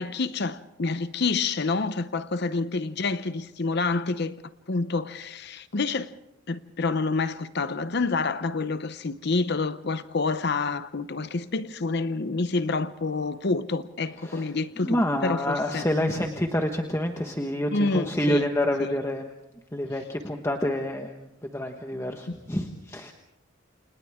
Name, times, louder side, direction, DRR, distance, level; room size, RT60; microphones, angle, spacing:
voice 1, 0.0-4.4 4.7-6.1 6.5-16.1 17.7-18.5 18.8-18.9 22.3-22.4, left 3 dB, 55° left, 0.7 m, -28 dB
voice 2, 14.8-19.3 19.7-23.1, left 1 dB, 15° left, 1.3 m, -28 dB
29.5 x 28.0 x 3.6 m
head